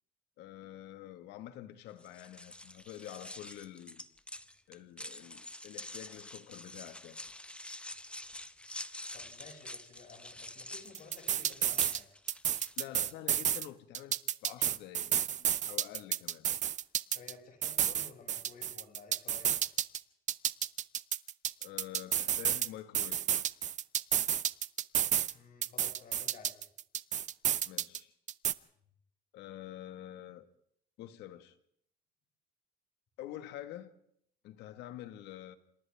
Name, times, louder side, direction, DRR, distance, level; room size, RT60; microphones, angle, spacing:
voice 1, 0.4-4.1 4.7-7.2 12.8-16.5 21.6-23.2 27.7-28.1 29.3-30.4 31.0-31.6 33.2-34.0 34.4-35.6, left 12 dB, 85° left, 1.7 m, -47 dB
sound 1, 2.0-13.1, left 1 dB, 5° left, 0.9 m, -47 dB
voice 2, 9.1-12.0 17.1-19.6 25.3-26.6, left 5 dB, 55° left, 7.2 m, -54 dB
sound 2, 10.9-12.0 12.3-13.7 13.9-17.3 17.6-20.0 20.3-22.7 22.9-25.3 25.6-28.0 28.3-28.5, right 10 dB, 45° right, 0.7 m, -31 dB
27.5 x 26.5 x 3.6 m
cardioid pair, 110°, 17 cm